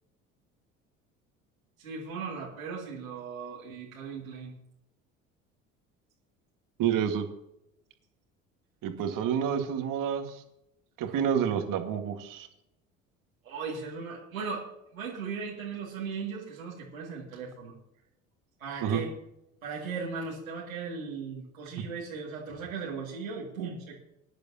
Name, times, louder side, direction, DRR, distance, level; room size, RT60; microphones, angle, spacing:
voice 1, 1.8-4.5 11.0-11.2 13.4-17.8 18.6-19.1 19.6-24.0, right 5 dB, 90° right, -5 dB, 2.5 m, -38 dB
voice 2, 6.8-7.3 8.8-10.3 11.0-12.5 18.8-19.0 21.8-21.9, right 8 dB, 55° right, 6 dB, 1.9 m, -28 dB
20.5 x 10.5 x 2.9 m, 0.83 s
hypercardioid pair, 65°, 40 cm